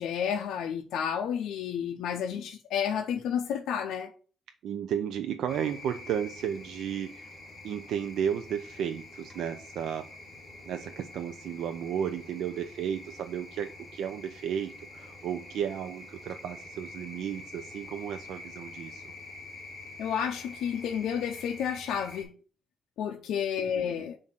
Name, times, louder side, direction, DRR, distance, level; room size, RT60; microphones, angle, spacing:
voice 1, 0.0-4.1 20.0-22.3 23.0-24.2, left 8 dB, 90° left, 0.5 m, -31 dB
voice 2, 4.6-7.3 7.6-10.1 10.6-19.0 23.6-24.1, right 8 dB, 80° right, 0.4 m, -33 dB
sound 1, 5.5-22.2, left 2 dB, 10° left, 3.1 m, -46 dB
7.2 x 2.6 x 5.8 m
cardioid pair, 125°, 0 cm